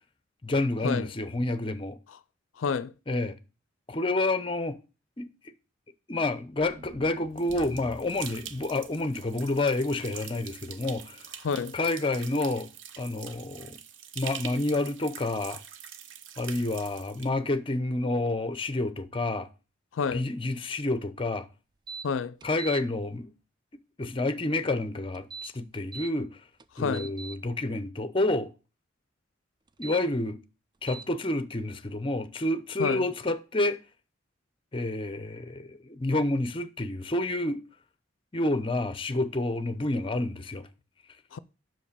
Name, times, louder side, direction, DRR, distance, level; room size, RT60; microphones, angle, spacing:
voice 1, 0.4-2.0 3.1-3.4 3.9-4.8 5.2-5.3 6.1-11.2 11.5-12.7 13.0-13.8 14.2-15.6 16.4-19.5 20.1-21.5 22.4-23.3 24.0-26.3 26.8-28.5 29.8-30.4 30.8-33.8 34.7-37.6 38.3-40.7, left 2 dB, 25° left, 0.6 m, -29 dB
voice 2, 2.6-2.9 11.4-11.7 19.9-20.3 22.0-22.4 26.7-27.1 32.8-33.1 41.3-41.4, left 5 dB, 90° left, 0.4 m, -29 dB
sound 1, 6.6-10.8, equal, 40° right, 1.0 m, -49 dB
sound 2, 7.4-17.3, right 9 dB, 75° right, 0.7 m, -44 dB
sound 3, 21.9-22.1 22.4-22.8 25.1-26.1 26.6-27.4 29.7-30.0 30.9-31.1, right 5 dB, 25° right, 0.4 m, -41 dB
5.8 x 5.2 x 6.7 m
head